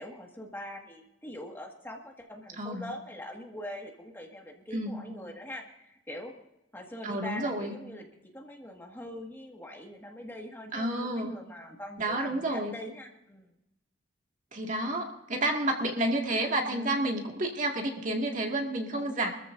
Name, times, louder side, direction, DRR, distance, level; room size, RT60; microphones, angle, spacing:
voice 1, 0.0-6.3 6.7-8.1 8.3-13.5 16.7-17.1 18.9-19.3, left 1 dB, 10° left, 1 dB, 1.8 m, -43 dB
voice 2, 2.6-2.9 4.7-5.1 7.0-7.7 10.7-11.4 12.0-12.8 14.5-19.3, right 1 dB, 45° right, 2 dB, 2.1 m, -30 dB
25.0 x 14.0 x 2.6 m, 0.90 s
head